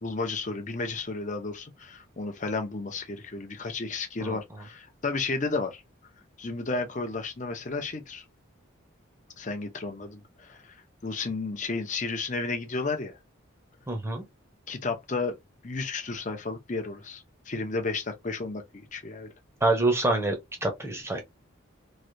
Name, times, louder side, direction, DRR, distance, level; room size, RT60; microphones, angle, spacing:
voice 1, 0.0-5.8 6.4-8.2 9.4-13.2 14.7-15.4 15.6-19.3, left 3 dB, 35° left, 0.7 m, -33 dB
voice 2, 13.9-14.2 19.6-21.2, right 2 dB, 10° right, 0.8 m, -26 dB
3.2 x 2.7 x 2.6 m
head